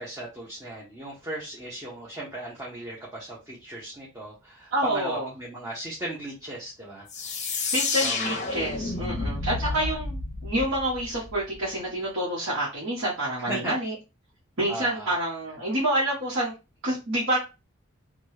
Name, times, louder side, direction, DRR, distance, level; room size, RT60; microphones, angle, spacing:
voice 1, 0.0-8.5 9.6-10.0 13.5-13.7 14.7-15.1, right 1 dB, 15° right, -6 dB, 0.8 m, -37 dB
voice 2, 4.7-5.3 7.7-13.9 14.6-16.5 16.8-17.4, right 1 dB, 65° right, -7 dB, 1.1 m, -28 dB
sound 1, 7.1-11.7, left 3 dB, 35° left, 0.6 m, -30 dB
2.9 x 2.3 x 3.1 m, 0.28 s
head